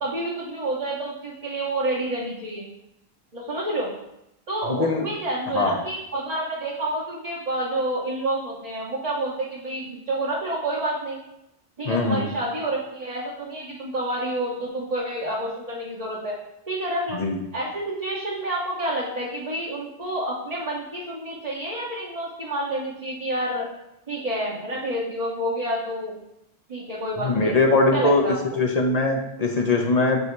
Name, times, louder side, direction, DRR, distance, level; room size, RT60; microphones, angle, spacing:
voice 1, 0.0-2.6 3.3-3.9 4.5-11.2 11.8-16.3 16.7-17.2 17.5-23.7 24.1-26.2 26.7-27.6 27.9-28.4, right 1 dB, 40° right, -5 dB, 1.1 m, -29 dB
voice 2, 4.7-5.0 5.5-5.7 11.9-12.2 17.1-17.4 27.2-28.2 28.6-30.2, left 3 dB, 45° left, 1 dB, 0.7 m, -21 dB
8.0 x 2.7 x 4.6 m, 0.85 s
omnidirectional pair, 1.0 m